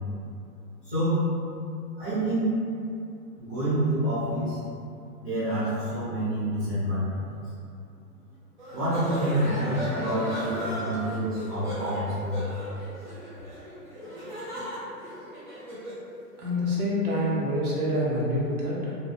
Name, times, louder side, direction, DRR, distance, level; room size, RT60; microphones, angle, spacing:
voice 1, 0.8-1.2 2.0-2.5 3.4-4.6 5.2-7.2 8.7-12.5, right 1 dB, 10° right, -17 dB, 0.8 m, -27 dB
sound 1, 8.6-16.0, equal, 30° right, 0.5 m, -36 dB
voice 2, 16.4-19.0, left 1 dB, 60° right, -6 dB, 1.0 m, -26 dB
3.1 x 2.0 x 2.7 m, 2.5 s
hypercardioid pair, 170°, 49 cm